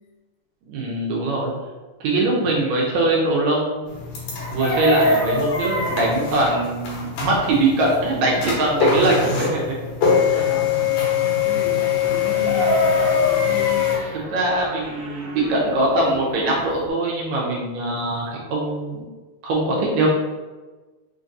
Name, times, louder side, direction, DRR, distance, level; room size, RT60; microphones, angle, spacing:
voice 1, 0.7-1.5 2.0-4.0 4.5-9.6 10.2-10.4 11.2-11.4 14.1-19.0 19.4-20.1, right 2 dB, 75° right, -3 dB, 1.9 m, -22 dB
voice 2, 2.2-2.6 9.0-9.2 10.3-11.0 11.4-14.2 14.5-15.1 18.0-18.4, left 4 dB, 85° left, -1 dB, 2.3 m, -35 dB
sound 1, 3.9-14.0, left 7 dB, 70° left, 2.3 m, -23 dB
Chicken rooster, 4.3-6.1 12.2-14.0 16.3-16.4 16.6-16.9, equal, 45° left, 0.7 m, -23 dB
sound 2, 12.0-16.9, right 1 dB, 60° right, 2.0 m, -40 dB
5.1 x 2.8 x 2.5 m, 1.2 s
omnidirectional pair, 3.5 m